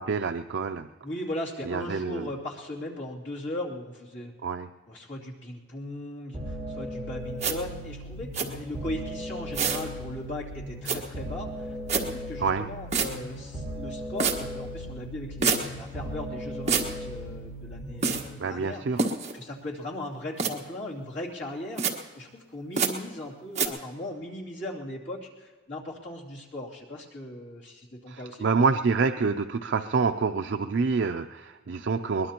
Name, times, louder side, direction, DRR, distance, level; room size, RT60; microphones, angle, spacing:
voice 1, 0.0-0.9 1.7-2.3 4.4-4.7 12.4-12.7 18.4-19.1 28.1-32.3, right 4 dB, 70° right, 7 dB, 0.4 m, -27 dB
voice 2, 1.0-4.3 4.9-19.1 19.3-28.5, left 1 dB, 70° left, -5 dB, 2.9 m, -38 dB
sound 1, 6.3-18.3, equal, ahead, 4.0 m, -37 dB
sound 2, 7.4-7.5 8.3-8.5 9.5-9.8 10.9-11.0 11.9-12.0 12.9-13.1 14.2-14.4 15.4-15.6 16.7-16.9 18.0-18.2 19.0-19.3 20.4-20.5 21.8-21.9 22.8-22.9 23.6-23.7, right 5 dB, 35° right, 1.5 m, -25 dB
22.0 x 20.5 x 2.9 m, 1.4 s
head